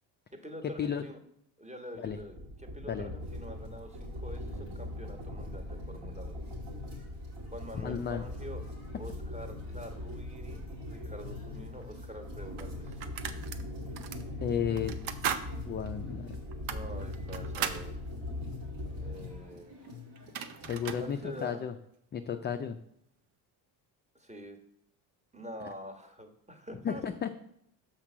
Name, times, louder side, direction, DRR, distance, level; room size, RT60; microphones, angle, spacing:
voice 1, 0.3-1.2 1.6-6.5 7.5-8.6 9.0-13.0 16.7-18.0 19.0-19.8 21.0-21.6 24.1-24.6 25.3-27.0, equal, 15° right, 3 dB, 1.3 m, -46 dB
sound 1, 2.3-19.5, left 1 dB, 40° right, 1.5 m, -41 dB
sound 2, 3.2-21.5, left 3 dB, 90° right, 2.6 m, -52 dB
voice 2, 7.8-8.2 14.4-14.9 15.6-16.3 20.7-21.7 22.1-22.8 26.8-27.3, left 8 dB, 25° left, 6 dB, 0.3 m, -33 dB
sound 3, 11.8-11.9 12.6-13.6 14.0-14.2 14.8-15.5 15.8-15.9 16.5-17.9 19.8-19.9 20.2-21.1, right 8 dB, 70° right, 0.8 m, -36 dB
5.8 x 4.5 x 6.2 m, 0.72 s
supercardioid pair, 75°, 49 cm